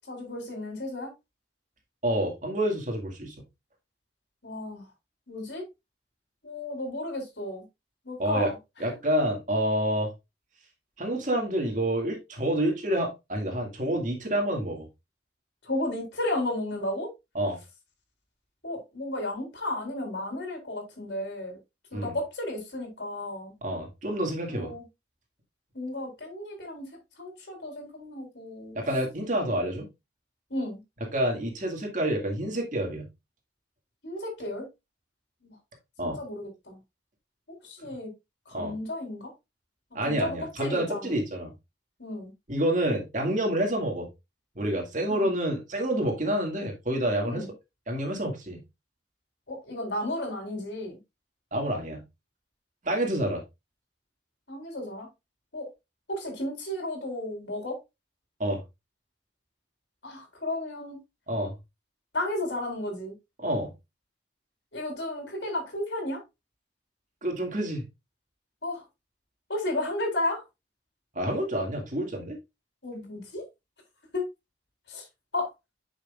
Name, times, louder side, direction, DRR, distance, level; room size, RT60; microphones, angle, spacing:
voice 1, 0.1-1.1 4.4-4.8 5.3-5.6 6.4-7.6 8.1-8.5 15.7-17.1 18.6-21.6 21.9-23.5 24.5-24.8 25.7-26.9 27.2-28.8 30.5-30.8 34.0-34.6 35.4-35.5 36.2-36.8 37.7-38.1 38.5-39.3 40.0-41.1 42.0-42.3 45.1-45.3 47.2-47.5 49.5-51.0 54.5-55.1 55.5-55.7 56.1-57.8 60.0-61.0 62.1-63.1 64.7-66.2 68.6-68.8 69.5-70.4 72.8-73.4 74.1-74.2 74.9-75.0 75.3-75.5, left 1 dB, 70° left, 4.0 m, -33 dB
voice 2, 2.0-3.3 8.2-8.5 8.8-10.1 11.0-14.9 17.3-17.6 21.9-22.1 23.6-24.7 28.8-29.9 31.1-33.1 36.0-36.2 38.5-38.7 39.9-41.5 42.5-44.1 44.6-47.5 47.9-48.6 51.5-52.0 52.8-53.4 58.4-58.6 61.3-61.5 63.4-63.7 67.2-67.8 71.1-72.4, right 1 dB, 45° right, 2.1 m, -28 dB
9.2 x 6.2 x 2.4 m
head